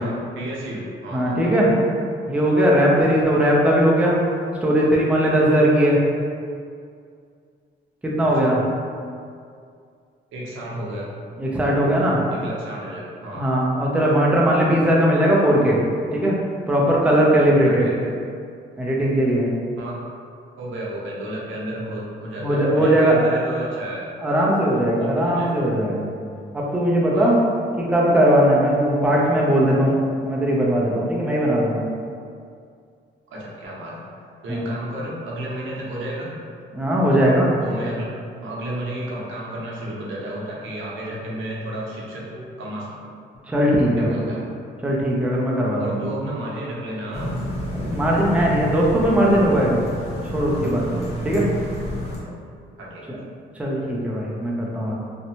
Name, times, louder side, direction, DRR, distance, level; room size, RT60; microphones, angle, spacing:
voice 1, 0.0-1.9 5.4-5.6 8.2-8.6 10.3-11.1 12.3-13.5 17.6-18.1 19.8-20.0 20.6-24.1 24.6-25.5 27.1-27.4 33.3-34.0 34.4-36.4 37.6-38.1 38.4-43.0 44.0-44.4 45.8-47.4 52.7-53.1, right 1 dB, 75° right, -5 dB, 0.7 m, -32 dB
voice 2, 1.1-1.7 2.3-4.2 4.6-6.0 8.0-8.6 11.4-12.2 13.3-15.8 16.1-16.4 16.7-17.9 18.8-19.5 22.4-23.2 24.2-26.1 26.5-27.3 27.8-30.0 30.3-31.8 34.5-34.6 36.7-37.5 43.5-44.3 44.8-46.0 47.7-49.8 50.3-50.8 51.2-51.5 53.1-53.2 53.6-54.9, equal, 5° right, -4 dB, 0.5 m, -19 dB
sound 1, 47.1-52.2, equal, 35° left, 0.8 m, -30 dB
2.6 x 2.1 x 2.7 m, 2.3 s
cardioid pair, 90°, 20 cm